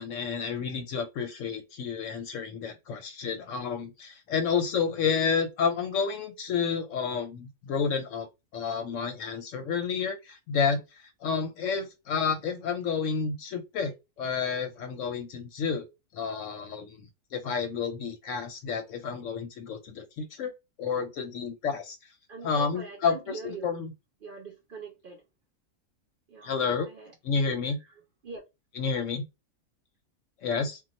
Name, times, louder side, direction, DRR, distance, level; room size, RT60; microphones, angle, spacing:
voice 1, 0.0-8.3 8.5-13.9 14.2-15.9 16.1-20.5 20.8-22.0 22.4-23.9 26.4-26.9 27.2-27.8 28.8-29.2 30.4-30.8, left 6 dB, 70° left, 0.9 m, -30 dB
voice 2, 22.3-23.7 24.2-25.2 26.3-27.1 27.9-28.4, right 4 dB, 55° right, 0.6 m, -43 dB
2.3 x 2.2 x 3.9 m
omnidirectional pair, 1.5 m